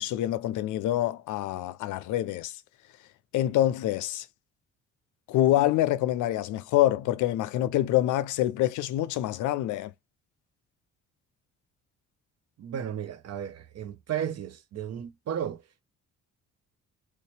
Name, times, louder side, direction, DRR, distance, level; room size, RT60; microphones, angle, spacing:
voice 1, 0.0-2.5 3.3-4.3 5.3-9.9, left 14 dB, 80° left, 0.5 m, -26 dB
voice 2, 12.6-15.8, right 9 dB, 55° right, 0.7 m, -34 dB
3.2 x 2.9 x 3.3 m
cardioid pair, 90°, 30 cm